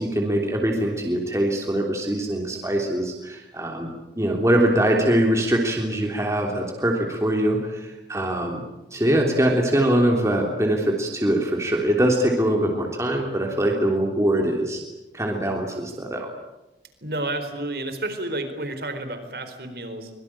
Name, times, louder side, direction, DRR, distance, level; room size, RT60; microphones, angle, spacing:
voice 1, 0.0-8.6 8.9-14.8 15.1-16.3, right 1 dB, 15° right, 1 dB, 3.3 m, -23 dB
voice 2, 17.0-20.1, right 1 dB, 60° right, 8 dB, 4.4 m, -30 dB
24.5 x 23.5 x 8.9 m, 0.99 s
head